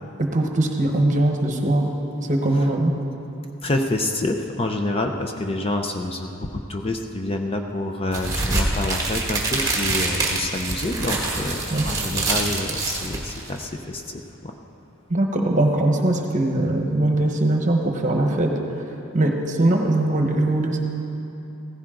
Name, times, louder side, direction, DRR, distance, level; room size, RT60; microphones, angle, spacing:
voice 1, 0.2-1.9 2.3-2.9 11.7-11.9 15.1-18.5 19.1-20.8, right 1 dB, 35° right, 2 dB, 1.2 m, -21 dB
voice 2, 3.6-14.5, left 2 dB, 25° left, 4 dB, 0.6 m, -27 dB
sound 1, 8.1-13.6, right 2 dB, 15° right, 1.6 m, -25 dB
16.0 x 15.0 x 3.8 m, 2.9 s
head